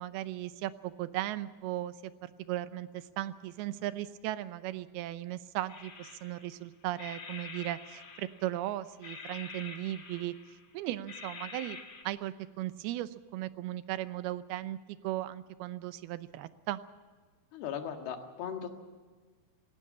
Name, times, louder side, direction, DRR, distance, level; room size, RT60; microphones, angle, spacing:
voice 1, 0.0-11.8 12.0-14.8 15.0-16.8, right 14 dB, 90° right, 13 dB, 2.7 m, -37 dB
sound 1, 5.7-6.6 7.0-8.6 9.0-10.7 11.1-12.0, left 4 dB, 35° left, 1.7 m, -46 dB
voice 2, 17.5-18.7, left 8 dB, 80° left, 5 dB, 3.6 m, -38 dB
18.5 x 17.5 x 8.6 m, 1.5 s
omnidirectional pair, 4.4 m